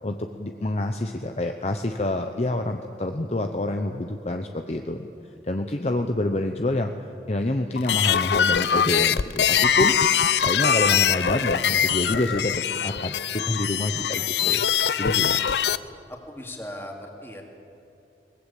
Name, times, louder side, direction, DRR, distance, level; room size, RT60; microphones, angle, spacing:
voice 1, 0.0-5.1 5.5-6.9 7.3-9.9 10.4-14.6 15.0-15.4, left 1 dB, 35° left, 5 dB, 0.8 m, -27 dB
sound 1, 7.8-15.8, left 8 dB, 75° left, 0.6 m, -22 dB
voice 2, 16.3-17.4, left 1 dB, 15° left, 1 dB, 2.6 m, -38 dB
22.5 x 20.0 x 8.4 m, 2.7 s
head